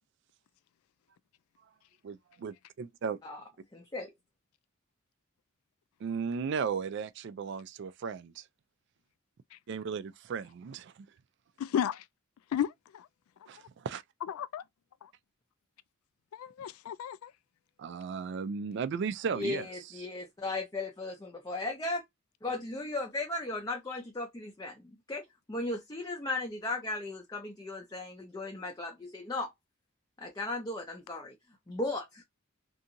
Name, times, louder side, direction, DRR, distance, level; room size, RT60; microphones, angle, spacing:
voice 1, 2.0-3.2 6.0-8.5 9.7-11.1 13.5-14.0 17.8-19.7, right 6 dB, 55° right, 0.3 m, -35 dB
voice 2, 3.7-4.1 19.3-22.0 22.4-29.5 30.2-31.3 31.7-32.2, left 2 dB, 20° left, 0.4 m, -36 dB
voice 3, 11.6-12.0 12.5-13.1 14.4-14.6 15.0-15.1 16.3-17.3, left 9 dB, 90° left, 0.3 m, -33 dB
2.7 x 2.5 x 2.5 m
head